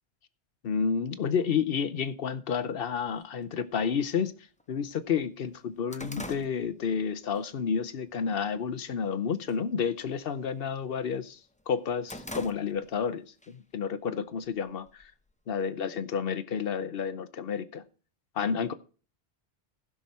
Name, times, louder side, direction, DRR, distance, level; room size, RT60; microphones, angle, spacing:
voice 1, 0.6-4.3 4.7-11.4 11.7-15.1 15.5-17.8 18.4-18.7, left 6 dB, 60° left, 0.9 m, -30 dB
sound 1, 3.0-3.1 4.0-4.1 4.6-4.7 5.0-7.4 7.8-8.1 8.6-9.1 9.4-9.7 10.0-11.2 11.6-13.1 13.4-13.5 14.4-15.3, equal, 10° left, 0.5 m, -44 dB
15.5 x 6.0 x 4.2 m
omnidirectional pair, 1.1 m